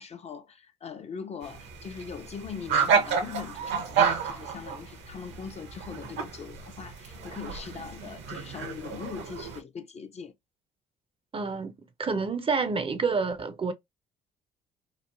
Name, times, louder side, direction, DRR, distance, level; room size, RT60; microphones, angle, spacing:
voice 1, 0.0-10.3, left 6 dB, 35° left, 0.4 m, -41 dB
sound 1, 1.4-9.6, right 6 dB, 65° right, 0.8 m, -30 dB
voice 2, 11.3-11.7 12.0-13.7, right 4 dB, 30° right, 0.5 m, -28 dB
3.0 x 2.0 x 2.3 m
hypercardioid pair, 55°, 20 cm